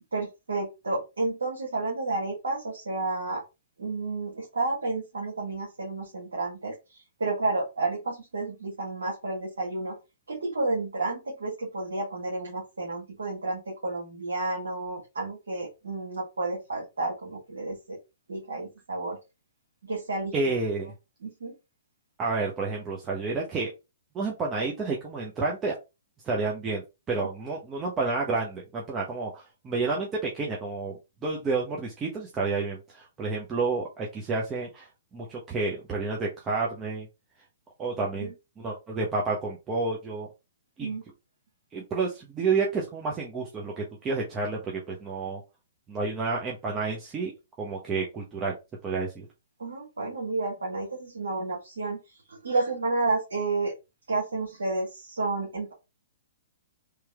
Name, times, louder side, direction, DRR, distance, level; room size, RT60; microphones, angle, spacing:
voice 1, 0.1-3.4 3.8-10.0 10.3-18.0 18.3-19.2 19.8-20.3 21.2-21.6 38.2-38.3 40.8-41.0 49.6-52.0 52.3-53.7 54.1-55.7, right 3 dB, 75° right, -3 dB, 1.5 m, -31 dB
voice 2, 20.3-20.9 22.2-23.7 24.1-25.7 26.2-30.9 31.2-34.9 35.1-37.1 37.8-38.3 38.6-40.3 40.8-40.9 41.7-45.4 45.9-47.3 47.6-48.6 48.8-49.3, right 4 dB, 20° right, -2 dB, 1.0 m, -30 dB
3.4 x 3.1 x 3.5 m, 0.25 s
figure-of-eight pair, 120°, 0 cm